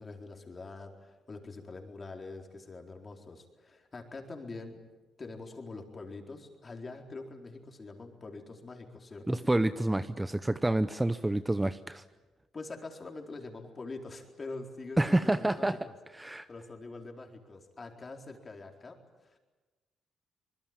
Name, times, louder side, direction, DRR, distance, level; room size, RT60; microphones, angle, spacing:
voice 1, 0.0-4.8 5.2-9.4 12.5-15.8 16.5-19.4, left 3 dB, 35° left, 2 dB, 4.3 m, -44 dB
voice 2, 9.3-12.0 15.0-15.9 16.1-16.5, right 1 dB, 10° right, 12 dB, 0.8 m, -28 dB
25.0 x 21.0 x 9.0 m, 1.2 s
cardioid pair, 90°, 0 cm